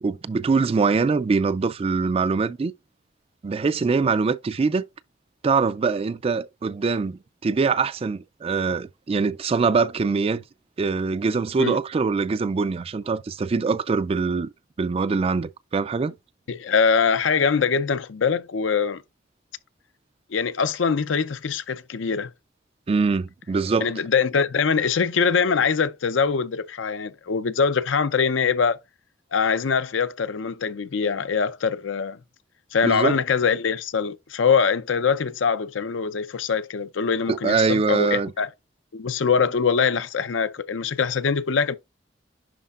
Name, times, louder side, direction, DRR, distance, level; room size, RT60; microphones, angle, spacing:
voice 1, 0.0-2.7 3.4-4.8 5.4-10.4 10.8-14.5 14.8-16.1 22.9-23.9 32.8-33.2 37.3-38.3, right 4 dB, 30° right, 0.3 m, -23 dB
voice 2, 16.5-19.0 20.3-22.3 23.8-28.8 29.3-32.2 32.7-38.5 38.9-41.8, left 6 dB, 75° left, 0.5 m, -23 dB
11.0 x 4.3 x 2.4 m
head